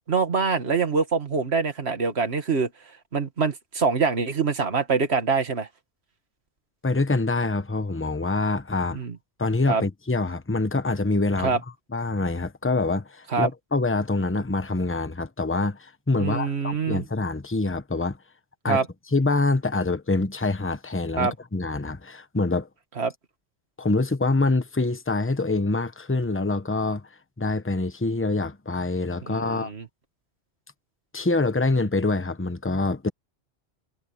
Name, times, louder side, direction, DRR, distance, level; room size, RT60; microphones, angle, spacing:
voice 1, 0.0-2.7 3.1-5.7 9.0-9.2 9.7-9.8 11.4-11.6 13.3-13.5 16.2-17.0 18.7-18.9 21.2-21.3 23.0-23.1 29.3-29.9, right 5 dB, 65° right, 2.1 m, -24 dB
voice 2, 6.8-9.0 9.4-11.6 11.9-18.2 18.6-18.8 19.1-22.7 23.8-27.0 27.4-29.7 31.1-33.1, left 3 dB, 10° left, 0.9 m, -25 dB
omnidirectional pair, 1.2 m